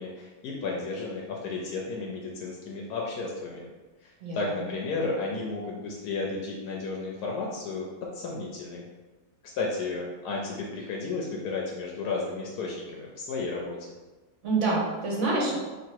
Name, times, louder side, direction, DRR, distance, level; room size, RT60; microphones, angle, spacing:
voice 1, 0.0-3.7 4.0-7.9 8.1-8.8 9.6-13.8, left 3 dB, 85° left, -2 dB, 1.1 m, -33 dB
voice 2, 4.2-4.7 14.4-15.5, right 3 dB, 55° right, -4 dB, 1.2 m, -27 dB
3.0 x 2.9 x 4.5 m, 1.2 s
omnidirectional pair, 1.6 m